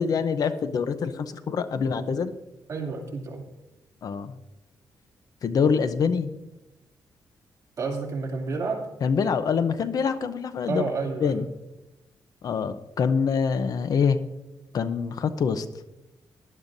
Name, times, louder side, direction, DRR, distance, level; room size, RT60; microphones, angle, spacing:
voice 1, 0.0-2.3 4.0-4.3 5.4-6.3 9.0-10.8 11.2-11.5 12.4-14.2 14.7-15.7, left 6 dB, 55° left, 11 dB, 0.6 m, -25 dB
voice 2, 2.7-3.4 7.8-8.8 10.7-11.5, right 4 dB, 45° right, -1 dB, 2.7 m, -30 dB
18.0 x 11.5 x 2.6 m, 0.98 s
wide cardioid pair, 145°, 8 cm